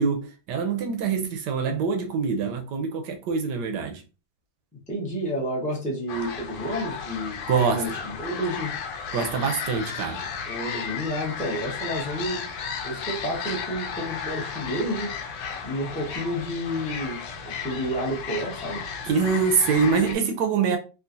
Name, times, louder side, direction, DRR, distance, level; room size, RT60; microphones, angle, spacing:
voice 1, 0.0-4.0 7.5-8.0 9.1-10.2 19.0-20.8, right 5 dB, 70° right, 1.1 m, -24 dB
voice 2, 4.9-7.4 7.7-8.7 10.5-12.4 12.8-15.1 15.6-18.8, equal, 10° left, 0.3 m, -30 dB
sound 1, 6.1-20.1, left 6 dB, 70° left, 1.1 m, -34 dB
3.7 x 2.4 x 2.6 m
omnidirectional pair, 2.2 m